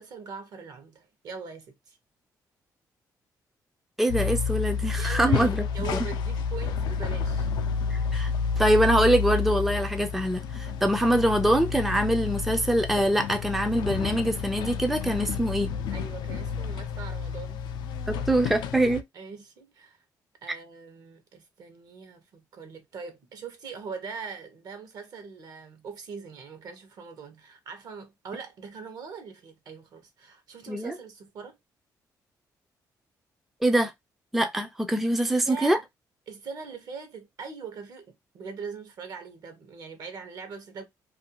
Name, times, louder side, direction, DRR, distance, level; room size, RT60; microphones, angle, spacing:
voice 1, 0.0-2.0 4.9-7.5 15.9-17.6 19.1-20.0 20.4-31.6 35.2-35.8 36.3-40.8, right 5 dB, 65° right, 0.8 m, -41 dB
voice 2, 4.0-5.9 7.9-8.3 8.6-15.7 18.1-19.0 30.7-30.9 33.6-33.9 34.3-35.8, right 1 dB, 5° right, 0.3 m, -24 dB
sound 1, 4.1-19.0, left 6 dB, 85° left, 0.4 m, -30 dB
2.5 x 2.2 x 2.7 m
cardioid pair, 120°, 7 cm